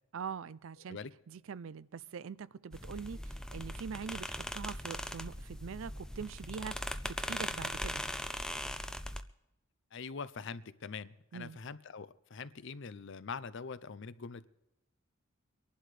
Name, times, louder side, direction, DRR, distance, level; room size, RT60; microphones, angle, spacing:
voice 1, 0.1-1.0 1.3-8.0 11.3-11.6, right 6 dB, 65° right, 19 dB, 0.4 m, -43 dB
sound 1, 2.7-9.2, left 1 dB, 5° left, 0.4 m, -40 dB
voice 2, 9.9-14.4, left 5 dB, 60° left, 15 dB, 0.6 m, -43 dB
24.5 x 11.5 x 3.3 m, 0.92 s
head